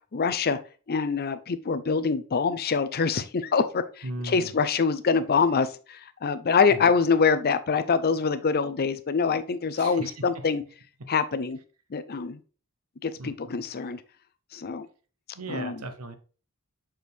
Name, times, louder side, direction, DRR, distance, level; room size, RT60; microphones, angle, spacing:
voice 1, 0.1-0.6 0.9-10.6 11.1-11.6 11.9-12.4 13.0-14.0 14.5-14.9 15.5-15.8, left 5 dB, 45° left, 12 dB, 0.5 m, -25 dB
voice 2, 4.0-4.5 6.7-6.9 9.7-10.2 13.2-13.6 15.3-16.2, right 2 dB, 85° right, 9 dB, 1.0 m, -37 dB
6.2 x 4.5 x 3.4 m, 0.37 s
head